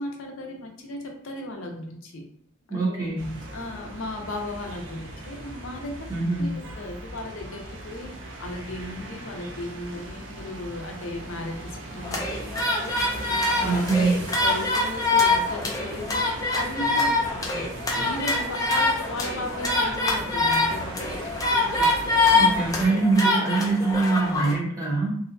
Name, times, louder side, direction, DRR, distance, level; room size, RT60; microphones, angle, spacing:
voice 1, 0.0-2.2 2.7-3.1 3.5-6.1 6.4-8.1 8.4-12.9 13.3-13.9 14.4-16.2 16.5-17.6 17.9-22.5 23.2-23.4, left 1 dB, 75° left, 3 dB, 0.5 m, -36 dB
voice 2, 2.7-3.3 6.1-6.5 13.6-14.2 22.3-25.1, right 3 dB, 15° right, -5 dB, 0.7 m, -24 dB
sound 1, 3.2-22.9, right 1 dB, 65° right, 0.5 m, -39 dB
sound 2, 12.0-24.6, left 2 dB, 15° left, 0.4 m, -24 dB
2.6 x 2.1 x 2.5 m, 0.65 s
head